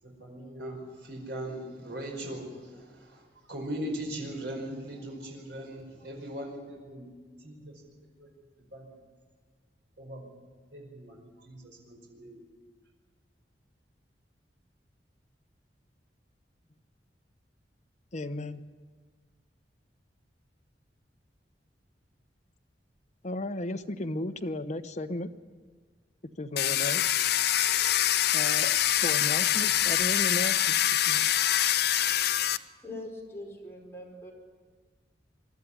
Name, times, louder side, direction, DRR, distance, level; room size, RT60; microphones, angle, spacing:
voice 1, 0.0-7.1 7.4-7.8 8.2-8.3 8.7-8.9 10.0-10.3 10.7-12.5, right 1 dB, 70° right, 0 dB, 5.2 m, -40 dB
voice 2, 18.1-18.6 23.2-25.3 26.4-27.1 28.3-31.3, left 1 dB, 40° left, 7 dB, 0.9 m, -35 dB
Domestic sounds home sounds, 26.6-32.6, left 12 dB, 65° left, 0.6 m, -25 dB
voice 3, 32.8-34.3, left 1 dB, 15° left, -2 dB, 5.1 m, -42 dB
23.5 x 12.5 x 9.7 m, 1.5 s
head